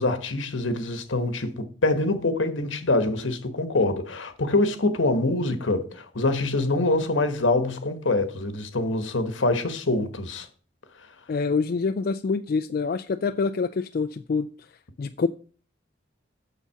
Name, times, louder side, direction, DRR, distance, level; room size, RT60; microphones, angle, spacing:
voice 1, 0.0-10.5, left 2 dB, 80° left, 1.2 m, -25 dB
voice 2, 11.3-14.5 15.0-15.3, left 4 dB, 50° left, 0.3 m, -26 dB
7.3 x 6.8 x 5.7 m
head